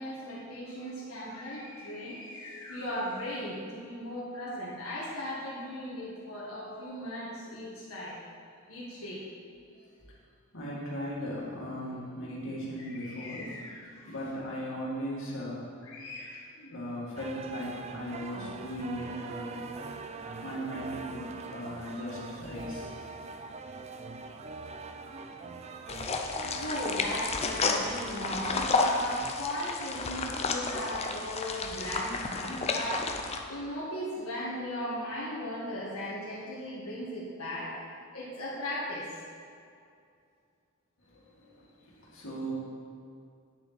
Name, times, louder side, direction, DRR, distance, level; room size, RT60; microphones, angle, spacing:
voice 1, 0.0-8.1 8.7-9.2 12.8-14.1 15.8-16.5 26.3-37.7 38.1-39.1, equal, 85° left, -8 dB, 1.7 m, -37 dB
voice 2, 0.8-1.1 1.9-2.0 9.7-9.8 10.5-13.4 14.0-15.7 16.6-22.9 41.0-42.5, equal, 65° left, -6 dB, 2.3 m, -38 dB
sound 1, 17.2-29.3, right 4 dB, 30° right, 0.4 m, -43 dB
sound 2, 25.9-33.4, left 3 dB, 30° left, 0.6 m, -31 dB
9.2 x 7.2 x 4.2 m, 2.4 s
head